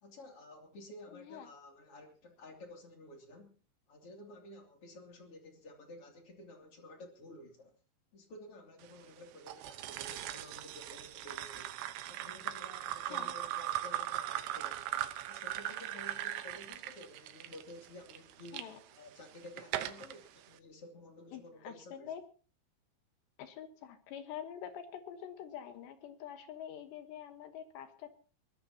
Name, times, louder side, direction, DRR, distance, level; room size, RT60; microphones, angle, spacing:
voice 1, 0.0-3.5 3.9-7.7 8.1-11.7 12.1-14.9 15.3-22.1, left 1 dB, 35° left, 3 dB, 3.1 m, -52 dB
voice 2, 1.1-1.5 13.1-13.3 18.5-18.8 21.3-22.2 23.4-28.1, left 9 dB, 70° left, 8 dB, 3.3 m, -46 dB
sound 1, 9.5-18.6 19.2-20.1, right 13 dB, 75° right, 3.0 m, -39 dB
22.5 x 18.0 x 2.9 m, 0.39 s
omnidirectional pair, 5.5 m